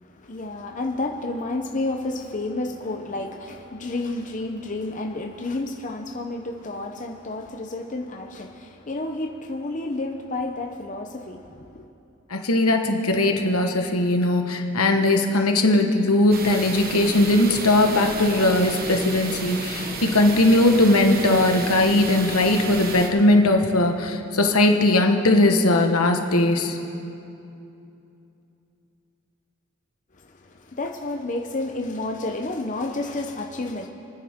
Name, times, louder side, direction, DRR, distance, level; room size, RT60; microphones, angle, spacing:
voice 1, 0.0-11.9 30.4-33.9, left 2 dB, 35° left, 3 dB, 0.7 m, -30 dB
voice 2, 12.3-26.8, left 2 dB, 80° left, 4 dB, 1.3 m, -19 dB
sound 1, 16.3-23.1, right 3 dB, 40° right, 1.2 m, -32 dB
29.5 x 9.8 x 3.7 m, 2.8 s
head